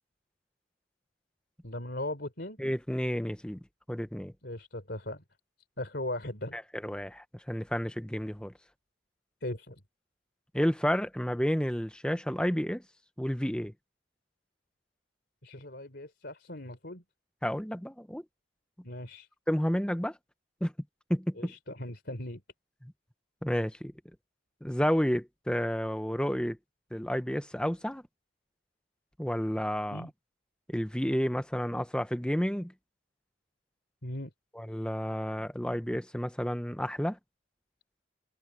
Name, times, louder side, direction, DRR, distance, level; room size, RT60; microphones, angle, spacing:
voice 1, 1.6-2.6 4.4-5.2 5.8-6.6 9.4-9.8 15.4-17.0 18.8-19.3 21.4-22.4 29.9-30.1 34.0-34.3, left 1 dB, 55° left, 4.0 m, -38 dB
voice 2, 2.6-3.6 3.9-4.3 6.5-8.5 10.5-12.8 13.2-13.7 17.4-18.2 19.5-20.2 20.6-20.7 21.1-21.5 22.8-22.9 23.4-23.9 24.6-26.6 26.9-28.0 29.2-30.1 30.7-32.7 34.6-37.2, equal, 5° left, 1.1 m, -31 dB
head